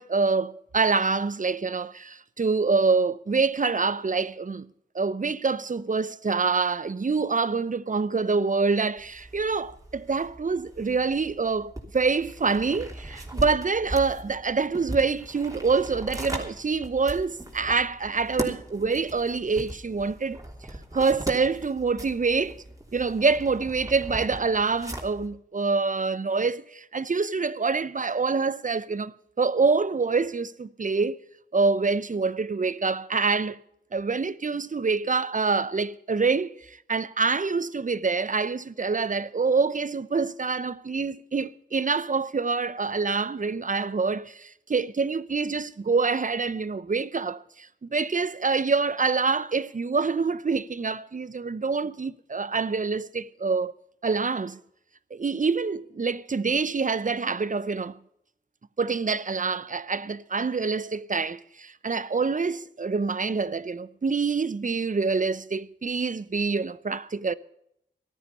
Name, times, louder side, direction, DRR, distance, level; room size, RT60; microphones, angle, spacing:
voice 1, 0.0-4.7 4.9-20.4 20.9-22.6 22.9-31.2 31.5-33.6 33.9-53.7 54.0-54.6 55.1-58.0 58.8-67.3, right 4 dB, 45° right, 0.6 m, -26 dB
sound 1, 9.0-25.3, right 1 dB, 20° right, 3.1 m, -39 dB
14.0 x 12.5 x 5.5 m
cardioid pair, 50°, 18 cm